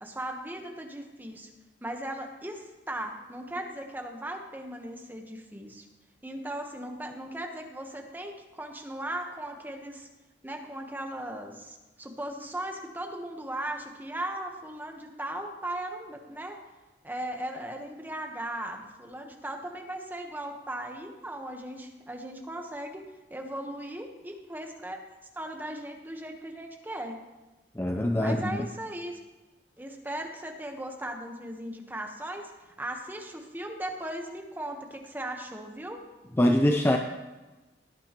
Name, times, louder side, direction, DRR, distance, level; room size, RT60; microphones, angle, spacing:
voice 1, 0.0-1.5 1.8-5.9 6.2-10.1 10.4-16.6 17.0-23.0 23.3-25.0 25.3-27.2 28.1-29.2 29.8-32.5 32.8-36.0, right 1 dB, 10° right, 3 dB, 1.1 m, -37 dB
voice 2, 27.7-28.6 36.4-37.0, left 1 dB, 15° left, 3 dB, 0.5 m, -23 dB
17.5 x 9.9 x 3.0 m, 1.1 s
head